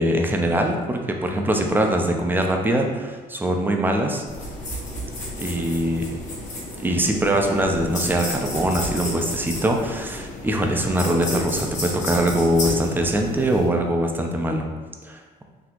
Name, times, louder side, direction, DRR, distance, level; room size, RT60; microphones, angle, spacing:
voice 1, 0.0-4.2 5.4-6.2 6.8-14.7 15.0-15.2, right 1 dB, 10° right, 3 dB, 0.4 m, -22 dB
sound 1, 4.3-13.7, left 1 dB, 45° left, 1.4 m, -32 dB
4.1 x 2.8 x 2.9 m, 1.3 s
cardioid pair, 110°, 17 cm